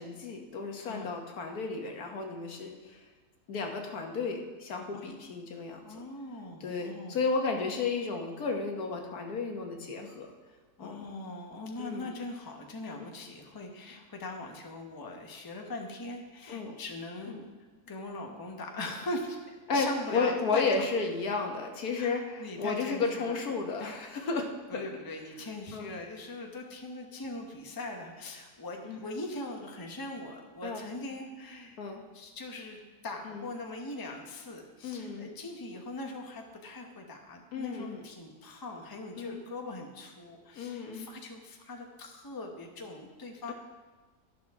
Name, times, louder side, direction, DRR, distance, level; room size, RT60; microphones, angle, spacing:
voice 1, 0.0-3.0 3.5-5.8 6.6-10.3 10.8-11.0 11.8-12.1 16.5-16.7 19.7-24.8 25.7-25.9 28.8-29.0 30.6-30.8 31.8-32.0 33.2-33.4 34.8-35.3 37.5-38.0 39.2-39.4 40.5-41.1, left 4 dB, 70° left, 3 dB, 1.6 m, -33 dB
voice 2, 5.8-7.2 10.8-17.5 17.9-20.8 22.0-23.4 23.8-23.9 24.3-31.8 32.1-43.5, left 2 dB, 15° left, 2 dB, 0.9 m, -41 dB
11.5 x 11.5 x 3.6 m, 1.3 s
omnidirectional pair, 1.7 m